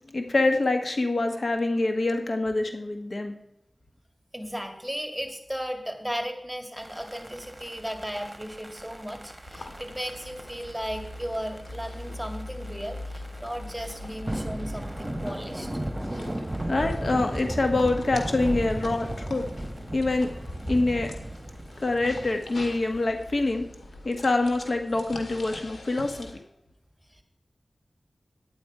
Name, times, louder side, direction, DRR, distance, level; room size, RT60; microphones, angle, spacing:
voice 1, 0.1-3.3 16.7-19.5 19.9-20.3 20.7-21.1 21.8-23.7 24.0-26.3, left 2 dB, 60° left, 5 dB, 1.4 m, -25 dB
voice 2, 4.3-15.7 27.1-27.2, equal, ahead, 4 dB, 2.2 m, -35 dB
sound 1, 6.8-23.0, right 1 dB, 20° right, 1.3 m, -36 dB
sound 2, 9.5-26.3, left 1 dB, 90° left, 1.9 m, -42 dB
10.5 x 9.5 x 4.9 m, 0.78 s
wide cardioid pair, 50°, 0 cm